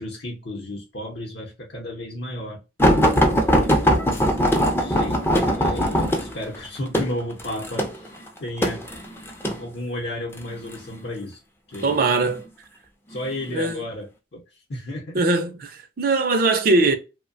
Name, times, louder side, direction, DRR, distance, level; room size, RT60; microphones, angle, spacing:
voice 1, 0.0-2.6 3.6-3.7 4.8-8.1 8.4-8.8 9.5-11.4 11.7-12.0 13.1-14.4 14.7-15.2, left 1 dB, 60° left, 0.7 m, -33 dB
sound 1, 2.8-9.6 10.4-10.8 11.7-12.4 13.1-13.3 13.7-13.8, equal, 15° left, 0.4 m, -20 dB
voice 2, 11.8-12.4 13.5-13.8 15.1-16.9, right 3 dB, 50° right, 0.4 m, -21 dB
2.8 x 2.1 x 2.5 m
head